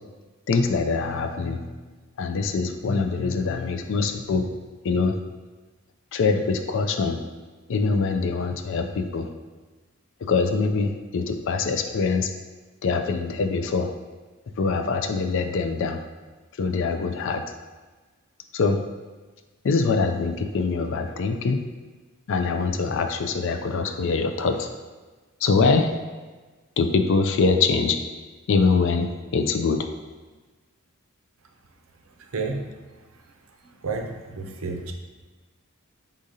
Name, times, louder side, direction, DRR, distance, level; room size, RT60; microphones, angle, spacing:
voice 1, 0.5-1.7 2.2-4.5 4.8-5.2 6.1-7.2 7.7-9.3 10.2-12.3 12.8-13.9 14.6-16.0 16.6-17.4 18.5-18.8 19.6-21.6 22.3-24.7 25.4-25.9 26.8-28.0 28.5-29.9, left 4 dB, 60° left, 7 dB, 0.4 m, -23 dB
voice 2, 33.8-34.9, right 4 dB, 70° right, 3 dB, 0.6 m, -30 dB
5.0 x 3.7 x 2.7 m, 1.3 s
head